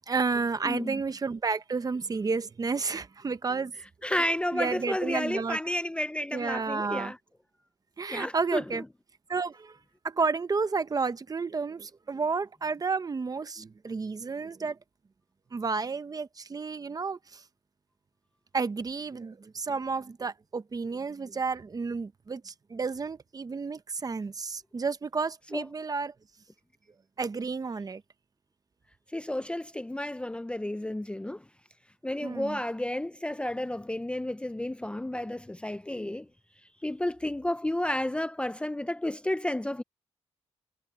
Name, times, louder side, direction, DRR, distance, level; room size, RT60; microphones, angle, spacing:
voice 1, 0.1-3.7 4.5-5.6 6.3-7.1 8.0-8.8 9.3-9.8 10.0-14.8 15.5-17.4 18.5-26.1 27.2-28.0 32.2-32.6, right 4 dB, 35° right, 0.8 m, -31 dB
voice 2, 0.6-1.0 4.0-7.2 8.1-8.8 25.5-25.6 29.1-31.4 32.0-36.3 36.8-39.8, left 1 dB, 10° left, 0.5 m, -31 dB
wide cardioid pair, 115°, 12 cm